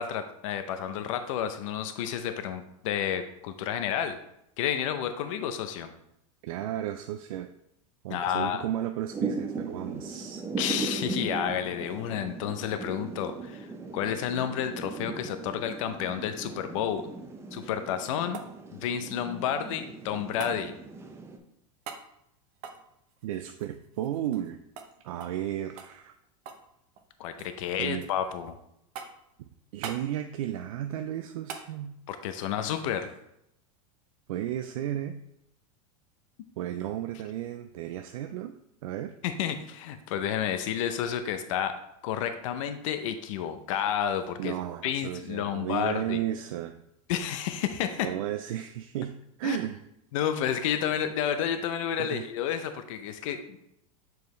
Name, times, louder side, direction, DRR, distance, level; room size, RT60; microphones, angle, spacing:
voice 1, 0.0-4.2 4.6-5.9 8.1-8.6 10.6-17.1 17.5-18.4 18.7-20.7 27.2-28.6 32.1-33.1 39.2-44.5 44.8-46.2 47.1-48.1 49.4-49.6 50.1-53.6, left 9 dB, 70° left, 9 dB, 0.6 m, -31 dB
voice 2, 6.4-7.5 8.0-10.4 23.2-24.6 25.0-26.1 27.8-28.0 29.4-32.0 34.3-35.2 36.6-39.1 44.4-46.8 48.0-49.8 52.0-52.3, right 12 dB, 85° right, 7 dB, 0.4 m, -34 dB
Thunder / Rain, 9.1-21.4, right 3 dB, 15° right, 0.6 m, -38 dB
sound 1, 17.8-19.8 20.4-20.6 21.8-22.1 22.5-24.5 24.8-24.9 25.2-25.4 25.8-26.7 26.9-27.6 28.0-28.5 28.9-29.3 29.8-30.1 31.5-31.7 34.1-34.2, right 6 dB, 45° right, 0.8 m, -43 dB
7.0 x 4.6 x 3.1 m, 0.79 s
supercardioid pair, 140°, 17 cm